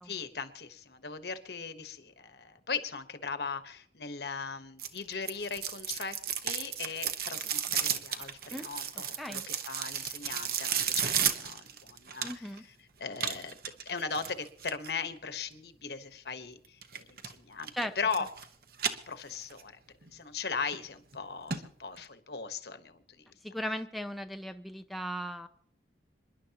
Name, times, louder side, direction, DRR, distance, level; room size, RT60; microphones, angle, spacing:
voice 1, 0.0-6.2 6.4-12.5 13.0-13.6 13.8-18.3 19.1-19.8 20.1-23.2, left 5 dB, 65° left, 9 dB, 1.2 m, -38 dB
sound 1, 4.8-12.6 13.2-14.9 16.8-17.3 17.6-18.5 18.7-19.6 20.0-20.1 20.7-20.8 21.1-21.2 21.5-21.6 22.0-22.1, right 8 dB, 55° right, 1.1 m, -33 dB
voice 2, 12.2-12.6 17.7-17.9 23.4-25.5, equal, ahead, 6 dB, 0.6 m, -37 dB
27.5 x 11.0 x 2.9 m, 0.62 s
head